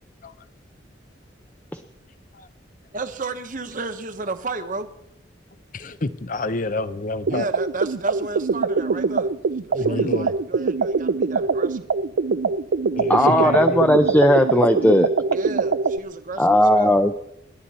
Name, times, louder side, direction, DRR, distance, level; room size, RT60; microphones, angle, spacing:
voice 1, 2.9-4.9 7.3-9.3 9.7-11.8 15.3-17.1, right 3 dB, 45° right, 8 dB, 1.2 m, -32 dB
voice 2, 5.7-7.5 9.7-10.3 12.9-14.0, left 2 dB, 45° left, 13 dB, 0.8 m, -28 dB
sound 1, 7.3-16.0, right 4 dB, 70° right, 0.5 m, -23 dB
voice 3, 13.1-15.1 16.4-17.1, equal, 10° left, 6 dB, 0.6 m, -16 dB
29.0 x 11.0 x 4.2 m, 0.78 s
head